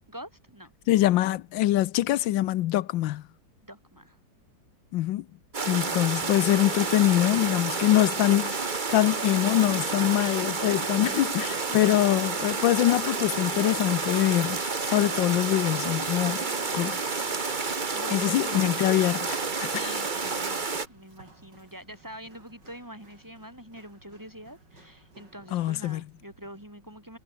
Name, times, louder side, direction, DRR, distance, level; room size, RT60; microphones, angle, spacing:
voice 1, 0.0-0.7 3.6-4.2 11.7-12.0 17.9-18.7 19.7-27.2, equal, 10° right, 6.9 m, -45 dB
voice 2, 0.9-3.2 4.9-5.2 5.6-16.4 16.7-17.0 18.1-19.7 25.5-26.0, left 14 dB, 85° left, 1.5 m, -24 dB
sound 1, 5.5-20.9, right 4 dB, 30° right, 1.5 m, -30 dB
Run, 10.6-26.6, right 2 dB, 70° right, 7.6 m, -55 dB
omnidirectional pair, 2.0 m